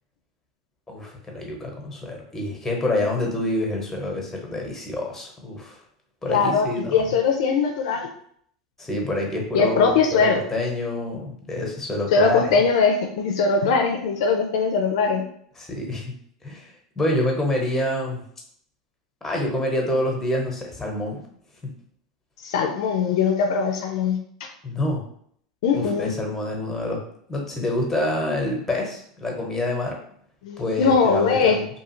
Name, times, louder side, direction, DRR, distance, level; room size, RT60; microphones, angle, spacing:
voice 1, 0.9-5.8 6.2-7.1 8.8-12.5 15.6-16.0 16.4-18.2 19.2-21.2 24.6-25.0 25.7-27.0 27.3-30.0 30.6-31.7, left 1 dB, 10° left, 0 dB, 0.9 m, -27 dB
voice 2, 6.3-8.1 9.5-10.4 12.1-15.2 22.4-24.5 25.6-26.1 30.4-31.6, left 5 dB, 70° left, 3 dB, 0.4 m, -21 dB
2.7 x 2.3 x 3.0 m, 0.65 s
hypercardioid pair, 90°, 3 cm